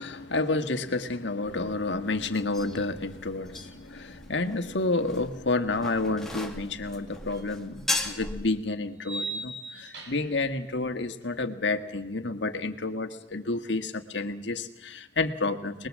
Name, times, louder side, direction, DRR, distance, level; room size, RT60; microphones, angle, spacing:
voice 1, 0.0-15.9, left 2 dB, 75° left, 7 dB, 1.6 m, -30 dB
sound 1, 1.4-8.5, left 2 dB, 5° left, 1.9 m, -38 dB
sound 2, 7.4-7.5 9.0-10.4, right 2 dB, 80° right, 4.5 m, -37 dB
24.0 x 21.0 x 7.5 m, 0.94 s
head